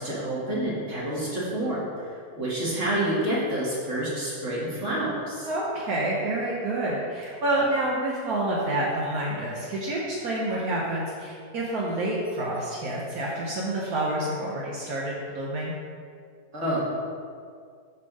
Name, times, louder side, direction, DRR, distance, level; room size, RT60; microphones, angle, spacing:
voice 1, 0.0-1.9 2.4-5.5 16.5-16.8, right 1 dB, 50° right, -8 dB, 2.0 m, -28 dB
voice 2, 5.4-15.7, right 1 dB, 75° right, -5 dB, 1.4 m, -28 dB
7.3 x 3.6 x 6.5 m, 2.2 s
omnidirectional pair, 1.6 m